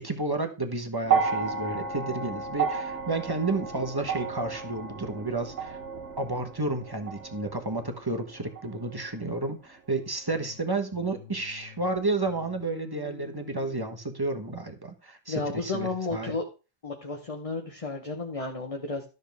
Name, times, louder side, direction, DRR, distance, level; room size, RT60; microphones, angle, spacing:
voice 1, 0.0-5.8 6.2-16.3, right 2 dB, 20° right, 5 dB, 1.1 m, -31 dB
sound 1, 1.0-9.4 10.4-10.5, right 5 dB, 80° right, 1.3 m, -32 dB
sound 2, 10.3-12.0 12.3-13.9, left 10 dB, 65° left, 1.2 m, -48 dB
voice 2, 15.3-16.4 16.8-19.1, left 3 dB, 30° left, 2 dB, 1.2 m, -32 dB
13.0 x 6.6 x 3.5 m, 0.32 s
omnidirectional pair, 1.2 m